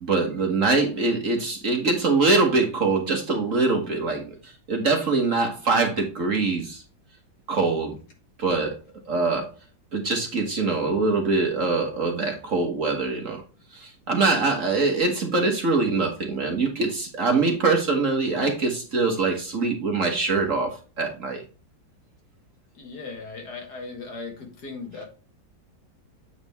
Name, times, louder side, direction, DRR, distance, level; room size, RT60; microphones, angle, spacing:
voice 1, 0.0-6.8 7.5-8.0 8.4-8.8 9.0-9.5 9.9-13.4 13.7-21.4, right 3 dB, 45° right, 3 dB, 1.5 m, -23 dB
voice 2, 22.7-25.1, left 4 dB, 55° left, 3 dB, 2.2 m, -37 dB
8.3 x 4.9 x 3.5 m, 0.35 s
omnidirectional pair, 2.1 m